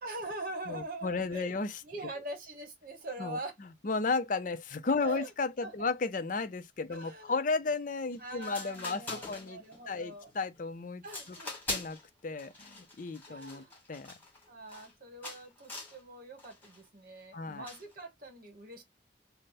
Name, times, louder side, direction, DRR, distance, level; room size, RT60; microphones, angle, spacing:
voice 1, 0.0-1.5 1.8-3.6 5.0-5.3 5.6-5.9 6.9-7.4 8.2-10.3 11.0-11.8 13.3-13.8 14.5-18.8, right 1 dB, 45° right, 1.3 m, -43 dB
voice 2, 0.7-1.7 3.2-3.4 3.8-11.0 11.7-14.1 17.3-17.7, left 4 dB, 45° left, 0.5 m, -34 dB
sound 1, 8.1-8.2 8.4-9.8 10.2-10.6 11.0-12.1 12.4-14.9 15.2-16.0 16.4-16.8 17.7-17.9, left 2 dB, 10° left, 1.6 m, -43 dB
3.4 x 2.1 x 4.1 m
head